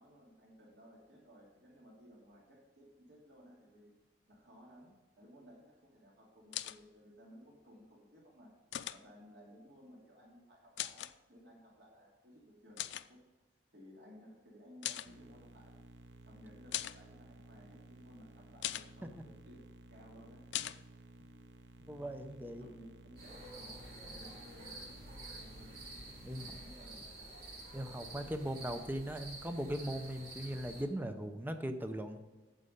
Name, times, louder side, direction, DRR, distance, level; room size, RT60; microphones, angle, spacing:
voice 1, 0.0-3.9 4.3-8.5 8.9-13.2 13.7-15.8 16.2-19.2 19.4-19.6 19.9-20.7 22.4-25.8 26.4-27.1 27.8-28.3, equal, 70° right, -3 dB, 2.5 m, -58 dB
sound 1, 6.5-6.8 8.7-9.0 10.8-11.1 12.8-13.1 14.8-15.1 16.7-17.0 18.6-18.9 20.5-20.8, left 13 dB, 90° left, 0.4 m, -39 dB
sound 2, 15.1-26.6, right 1 dB, 90° right, 0.7 m, -56 dB
voice 2, 21.9-22.6 26.2-26.4 27.7-32.2, right 1 dB, 10° right, 7 dB, 0.6 m, -39 dB
sound 3, 23.2-30.8, right 2 dB, 55° right, 3.0 m, -49 dB
8.4 x 7.7 x 5.2 m, 1.2 s
head